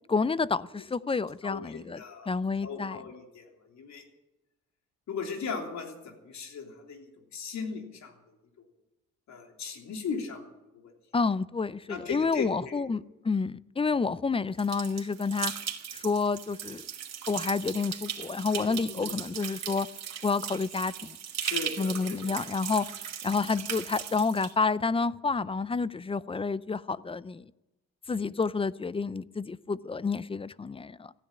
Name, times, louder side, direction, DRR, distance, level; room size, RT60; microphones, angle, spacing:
voice 1, 0.1-3.0 11.1-15.5 15.9-16.8 17.3-19.9 20.2-21.2 21.8-22.9 23.2-27.4 28.1-31.1, left 4 dB, 20° left, 18 dB, 0.5 m, -29 dB
voice 2, 1.4-3.4 3.7-4.0 5.1-8.1 9.3-10.4 10.7-10.9 11.9-13.0 18.6-19.1 21.4-22.4, left 5 dB, 65° left, 3 dB, 3.3 m, -38 dB
sound 1, 14.6-24.5, right 9 dB, 60° right, 2.2 m, -38 dB
15.5 x 10.0 x 8.7 m, 0.97 s
cardioid pair, 90°, 30 cm